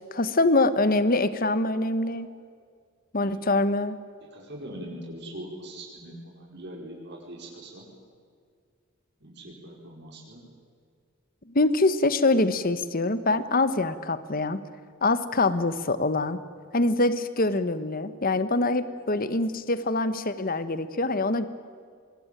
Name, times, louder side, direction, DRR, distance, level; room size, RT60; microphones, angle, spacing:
voice 1, 0.1-2.3 3.1-4.0 11.5-14.6 15.0-16.4 16.7-21.5, left 2 dB, 45° left, 13 dB, 1.3 m, -24 dB
voice 2, 4.3-7.9 9.2-10.4, right 1 dB, 60° right, -1 dB, 4.9 m, -42 dB
24.5 x 21.5 x 9.1 m, 2.1 s
head